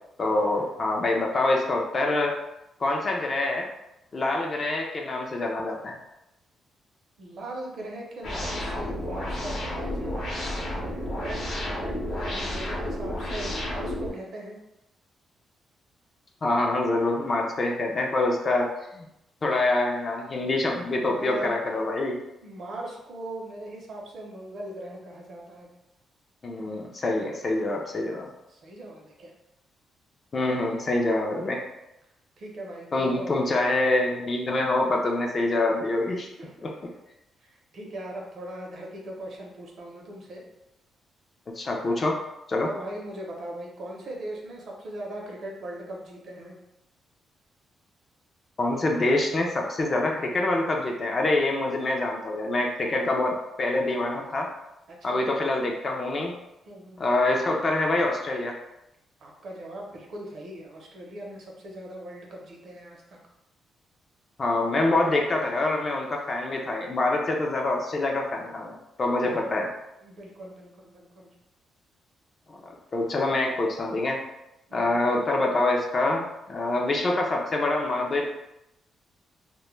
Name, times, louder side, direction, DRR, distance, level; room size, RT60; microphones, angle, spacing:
voice 1, 0.2-2.3 2.8-3.7 4.1-5.9 16.4-18.7 18.9-19.1 19.4-22.2 26.4-28.3 30.3-31.6 32.9-36.3 36.6-36.7 41.6-42.2 42.5-42.7 48.6-54.5 55.0-56.4 57.0-58.5 64.4-69.7 72.9-74.2 74.7-78.3, left 2 dB, 30° left, 0 dB, 0.3 m, -25 dB
voice 2, 7.2-14.6 21.0-21.6 22.4-25.7 28.5-29.3 32.4-33.4 36.4-36.6 37.4-40.4 42.6-46.5 54.9-55.2 56.6-57.0 59.2-63.2 69.1-69.6 70.0-71.3 74.7-75.0, right 1 dB, 50° right, -1 dB, 0.6 m, -40 dB
sound 1, 8.2-14.1, left 1 dB, 60° left, 0.7 m, -31 dB
2.1 x 2.1 x 3.0 m, 0.88 s
cardioid pair, 155°, 0 cm